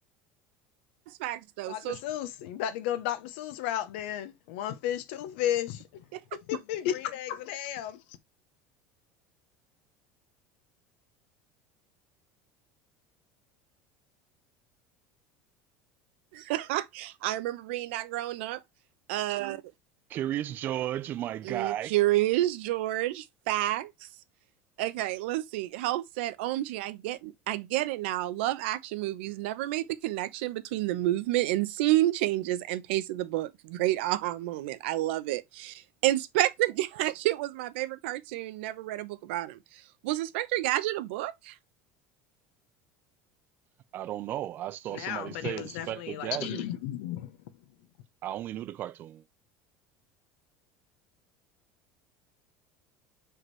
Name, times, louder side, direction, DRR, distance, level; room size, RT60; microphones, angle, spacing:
voice 1, 1.1-2.0 6.1-6.2 16.3-18.6 19.1-19.6 21.4-24.1 24.8-41.6, right 15 dB, 85° right, 0.8 m, -30 dB
voice 2, 1.7-6.0 6.3-8.0 44.9-47.4, left 11 dB, 75° left, 0.9 m, -33 dB
voice 3, 20.1-21.9 43.9-46.6 48.2-49.2, right 12 dB, 30° right, 0.5 m, -34 dB
6.2 x 4.8 x 3.2 m
cardioid pair, 175°, 6 cm